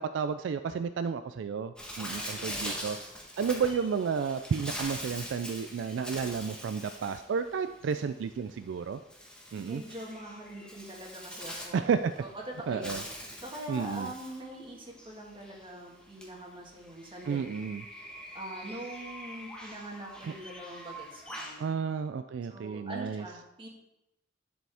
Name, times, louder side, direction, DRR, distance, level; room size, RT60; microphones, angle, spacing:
voice 1, 0.0-3.0 3.4-9.0 9.5-9.8 11.7-12.1 12.7-13.0 13.7-14.1 17.3-17.8 20.2-20.3 21.6-23.2, right 6 dB, 75° right, 10 dB, 0.3 m, -32 dB
Bird, 1.8-21.6, equal, 5° left, 1.2 m, -43 dB
voice 2, 1.9-2.8 9.6-11.9 12.2-12.3 12.6-13.0 13.4-17.5 18.3-21.7 22.5-23.7, right 1 dB, 30° right, -1 dB, 1.6 m, -43 dB
11.0 x 5.1 x 3.5 m, 0.89 s
head